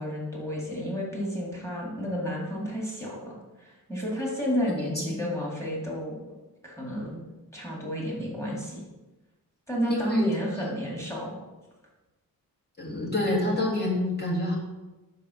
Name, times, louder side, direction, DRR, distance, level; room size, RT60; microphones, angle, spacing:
voice 1, 0.0-6.2 6.6-7.2 7.5-8.8 9.7-11.4, equal, 10° left, -4 dB, 2.2 m, -31 dB
voice 2, 4.8-5.2 9.9-10.2 12.8-14.6, left 1 dB, 25° left, -3 dB, 2.0 m, -27 dB
5.0 x 4.8 x 6.2 m, 1.1 s
wide cardioid pair, 135°, 37 cm